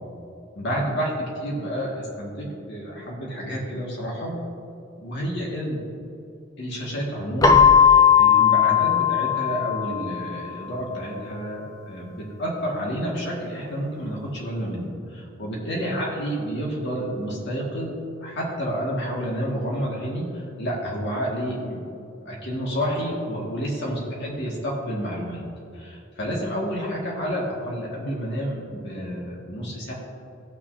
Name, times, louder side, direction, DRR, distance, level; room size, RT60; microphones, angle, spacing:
voice 1, 0.6-4.4 5.0-5.8 6.6-17.9 18.2-22.0 22.3-25.4 25.7-29.9, equal, 60° left, -4 dB, 1.9 m, -29 dB
Keyboard (musical), 7.4-10.1, left 7 dB, 15° left, 0.4 m, -17 dB
16.5 x 6.2 x 2.7 m, 2.6 s
head